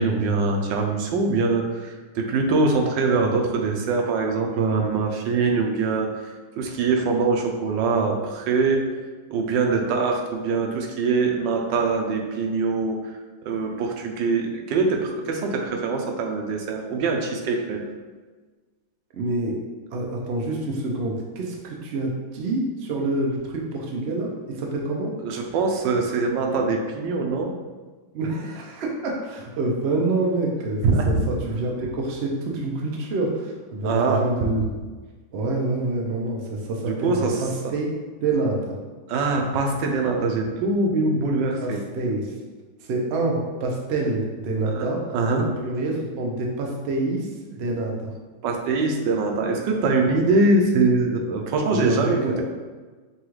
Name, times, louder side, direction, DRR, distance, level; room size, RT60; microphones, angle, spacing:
voice 1, 0.0-8.9 9.3-13.1 13.4-17.8 25.2-27.5 30.8-31.2 33.8-34.2 36.8-37.4 39.1-41.8 44.7-45.5 48.4-52.4, right 3 dB, 90° right, 2 dB, 1.3 m, -23 dB
voice 2, 19.1-19.6 19.9-25.1 28.1-34.8 35.3-37.9 38.2-38.8 41.6-42.4 42.8-45.1 45.3-48.1 51.7-52.4, right 2 dB, 60° right, 0 dB, 0.6 m, -27 dB
5.9 x 2.3 x 3.1 m, 1.4 s
omnidirectional pair, 1.9 m